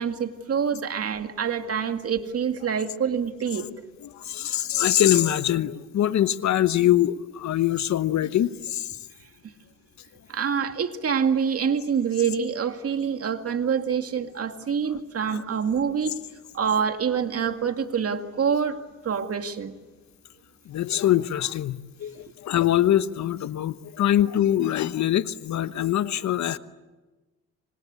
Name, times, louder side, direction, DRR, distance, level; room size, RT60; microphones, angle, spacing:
voice 1, 0.0-3.7 10.3-16.1 16.5-18.8 19.0-19.7, right 7 dB, 50° right, 7 dB, 2.2 m, -26 dB
voice 2, 4.0-8.9 15.3-15.4 20.7-26.6, left 12 dB, 65° left, 13 dB, 1.1 m, -23 dB
27.0 x 25.5 x 8.3 m, 1.2 s
cardioid pair, 90°, 30 cm